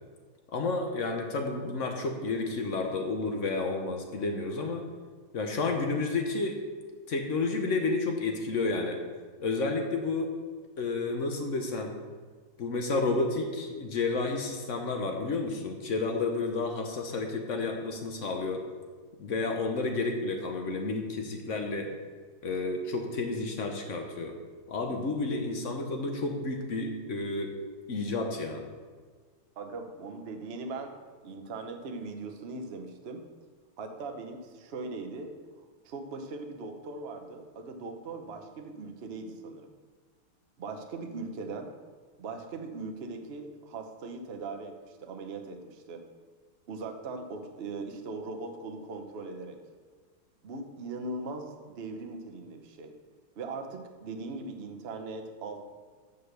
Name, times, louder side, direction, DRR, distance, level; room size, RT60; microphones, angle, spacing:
voice 1, 0.5-4.9 5.3-6.6 7.1-9.0 9.4-10.3 10.8-11.9 12.6-18.7 19.2-21.9 22.4-24.4 24.7-27.6 27.9-28.6, left 3 dB, 60° left, 3 dB, 0.8 m, -31 dB
voice 2, 29.6-31.0 31.2-33.2 33.8-35.3 35.6-39.7 40.6-41.7 42.2-46.0 46.7-49.6 50.4-52.9 53.4-55.6, right 3 dB, 65° right, 4 dB, 0.6 m, -40 dB
8.0 x 5.5 x 6.7 m, 1.5 s
omnidirectional pair, 2.4 m